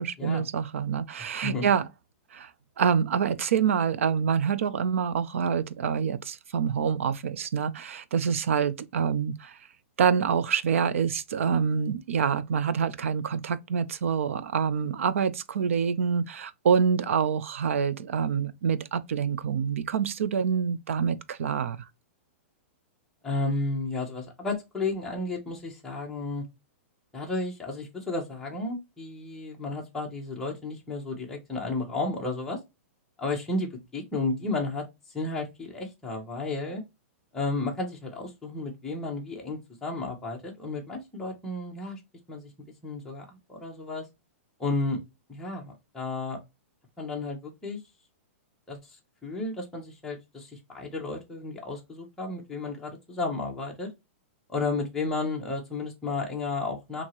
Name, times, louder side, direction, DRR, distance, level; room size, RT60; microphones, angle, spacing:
voice 1, 0.0-1.9 2.3-2.5 2.8-9.6 10.0-21.8, right 7 dB, 75° right, 0.5 m, -26 dB
voice 2, 23.2-26.4 27.1-32.6 33.2-34.9 35.1-36.8 37.3-42.0 42.3-42.5 42.8-44.0 44.6-45.0 45.3-46.4 47.0-47.8 48.7-49.0 49.2-53.9 54.5-57.0, left 3 dB, 5° left, 0.8 m, -32 dB
4.4 x 2.8 x 2.9 m
hypercardioid pair, 175°, 7 cm